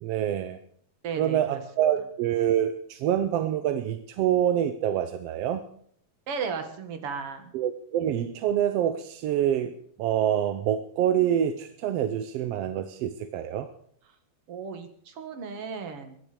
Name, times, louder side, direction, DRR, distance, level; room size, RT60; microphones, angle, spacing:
voice 1, 0.0-0.6 1.2-5.6 7.5-9.7 10.0-13.7, right 10 dB, 70° right, 9 dB, 1.6 m, -26 dB
voice 2, 1.0-1.6 6.3-7.5 14.5-16.2, right 5 dB, 55° right, 7 dB, 2.5 m, -35 dB
22.5 x 10.5 x 5.1 m, 0.63 s
omnidirectional pair, 3.3 m